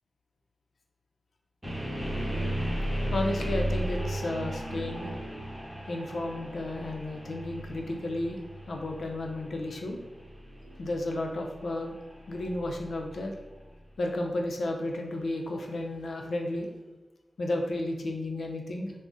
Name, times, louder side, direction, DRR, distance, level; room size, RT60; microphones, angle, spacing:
sound 1, 1.6-13.6, equal, 10° right, 1.1 m, -35 dB
voice 1, 3.1-5.1 5.9-8.4 8.7-10.0 10.8-11.9 12.3-13.3 14.0-16.7 17.4-18.9, left 1 dB, 85° left, 2 dB, 0.4 m, -32 dB
3.5 x 2.0 x 3.8 m, 1.1 s
cardioid pair, 50°, 0 cm